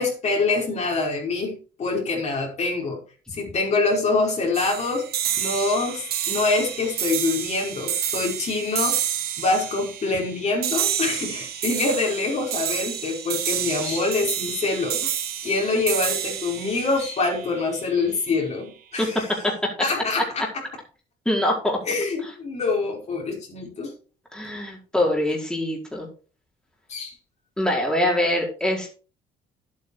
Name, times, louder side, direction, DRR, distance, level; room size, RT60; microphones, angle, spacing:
voice 1, 0.0-3.0 3.3-5.1 5.4-9.0 9.4-19.3 19.8-20.6 21.8-23.9 26.9-27.1, left 3 dB, 40° left, -1 dB, 5.1 m, -25 dB
sound 1, 4.5-18.0, right 10 dB, 70° right, 2.1 m, -29 dB
voice 2, 19.0-19.7 21.2-21.8 24.3-26.1 27.6-28.9, left 1 dB, 5° left, -2 dB, 4.6 m, -24 dB
11.0 x 8.8 x 4.9 m, 0.36 s
cardioid pair, 110°, 17 cm